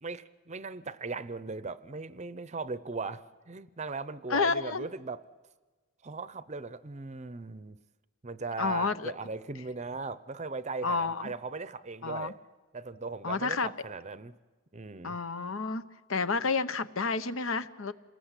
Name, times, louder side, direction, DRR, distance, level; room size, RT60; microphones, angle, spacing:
voice 1, 0.0-5.2 6.0-7.8 8.2-12.4 12.7-14.3 14.7-15.2, right 4 dB, 30° right, 14 dB, 0.7 m, -38 dB
voice 2, 4.3-4.9 8.6-9.1 10.8-11.3 12.0-12.3 13.2-13.7 15.0-15.8 16.1-17.9, left 4 dB, 65° left, 12 dB, 1.0 m, -30 dB
27.5 x 20.5 x 8.3 m, 1.3 s
head